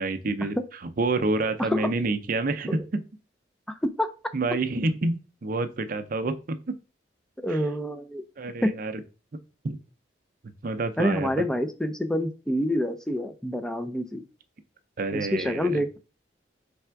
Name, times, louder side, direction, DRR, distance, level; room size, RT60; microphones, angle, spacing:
voice 1, 0.0-3.0 4.3-6.6 7.5-7.7 8.4-9.0 9.6-9.8 10.6-11.4 15.0-15.8, right 3 dB, 50° right, 10 dB, 0.5 m, -28 dB
voice 2, 1.6-1.9 3.7-4.1 7.4-8.2 8.6-8.7 11.0-14.2 15.1-16.0, left 1 dB, 5° left, 8 dB, 0.4 m, -27 dB
3.4 x 3.4 x 4.5 m, 0.33 s
head